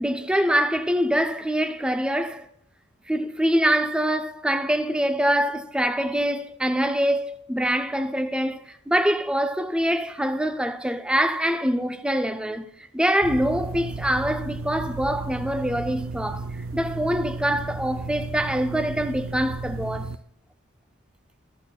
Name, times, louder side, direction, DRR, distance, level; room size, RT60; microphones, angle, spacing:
voice 1, 0.0-2.5 3.1-12.7 12.9-20.1, equal, 5° right, 0.4 m, -24 dB
sound 1, 13.2-20.2, right 3 dB, 85° right, 0.4 m, -34 dB
13.0 x 8.7 x 2.3 m
head